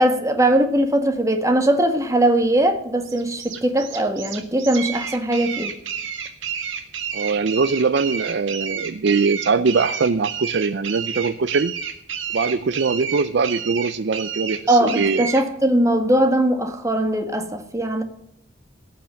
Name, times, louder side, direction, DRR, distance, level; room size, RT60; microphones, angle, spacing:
voice 1, 0.0-5.7 14.7-18.0, right 1 dB, 15° right, 1.6 m, -20 dB
sound 1, 3.1-15.5, right 7 dB, 80° right, 1.8 m, -30 dB
voice 2, 7.1-11.7 12.3-15.3, right 4 dB, 60° right, 0.5 m, -22 dB
17.5 x 5.9 x 7.6 m
head